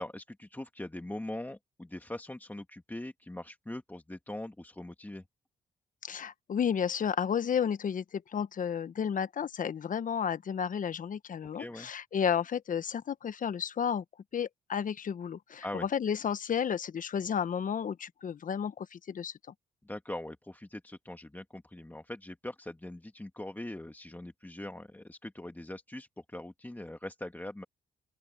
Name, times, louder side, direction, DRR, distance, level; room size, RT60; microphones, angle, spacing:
voice 1, 0.0-5.2 11.5-11.9 15.6-15.9 19.8-27.6, left 1 dB, 10° left, 2.0 m, -42 dB
voice 2, 6.0-14.0 14.3-19.3, left 7 dB, 55° left, 1.2 m, -32 dB
open air
supercardioid pair, 60°, 16 cm